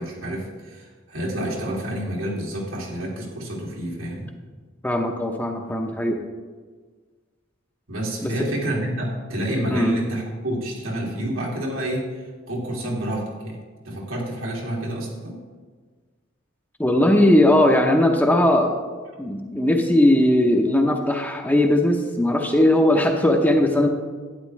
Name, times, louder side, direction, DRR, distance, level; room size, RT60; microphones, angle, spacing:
voice 1, 0.0-4.3 7.9-13.6 13.8-15.4, right 1 dB, 85° right, -2 dB, 2.4 m, -28 dB
voice 2, 4.8-6.2 8.2-8.3 9.7-9.9 16.8-18.7 19.2-23.9, left 1 dB, 10° left, 2 dB, 0.7 m, -19 dB
11.5 x 9.5 x 3.2 m, 1.5 s
head